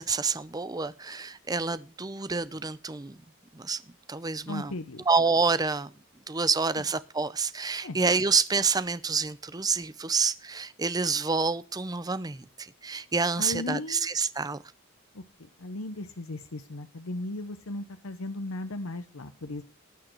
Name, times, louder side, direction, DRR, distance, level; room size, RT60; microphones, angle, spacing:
voice 1, 0.0-3.2 3.5-3.8 4.1-4.7 5.1-5.9 6.3-14.6, right 4 dB, 20° right, 0.6 m, -28 dB
voice 2, 4.5-5.0 7.8-8.0 13.4-14.1 15.1-19.6, left 2 dB, 90° left, 0.9 m, -36 dB
19.0 x 6.4 x 4.6 m
head